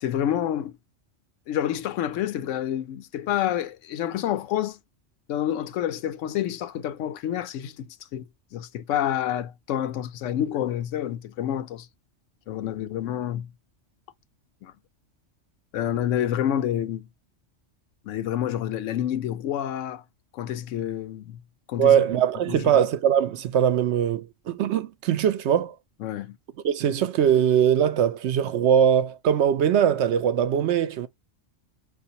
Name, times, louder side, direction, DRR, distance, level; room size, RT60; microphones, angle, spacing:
voice 1, 0.0-0.8 1.5-4.8 5.3-11.9 12.5-13.5 14.6-14.7 15.7-17.1 18.1-20.0 20.3-21.4 21.7-22.0 22.5-22.6 26.0-26.4, left 11 dB, 85° left, 1.0 m, -28 dB
voice 2, 21.8-25.7 26.6-31.1, right 9 dB, 70° right, 0.9 m, -21 dB
4.7 x 2.5 x 2.7 m
omnidirectional pair, 1.3 m